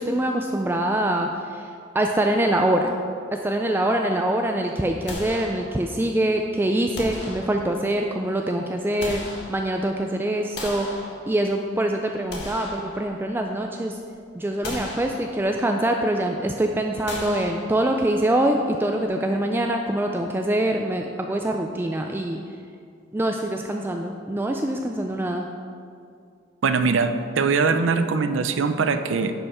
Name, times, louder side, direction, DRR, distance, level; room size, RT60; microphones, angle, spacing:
voice 1, 0.0-1.7 1.9-2.9 3.3-9.2 9.5-11.0 11.3-14.0 14.3-22.4 23.1-25.5, right 1 dB, 10° right, 3 dB, 0.3 m, -24 dB
sound 1, 5.1-6.1 6.9-8.0 8.7-10.0 10.5-11.7 12.1-13.6 13.9-14.1 14.6-15.7 17.1-18.2, left 1 dB, 65° left, 1.7 m, -37 dB
voice 2, 26.6-29.3, right 4 dB, 85° right, 9 dB, 0.5 m, -22 dB
10.0 x 5.5 x 4.3 m, 2.3 s
head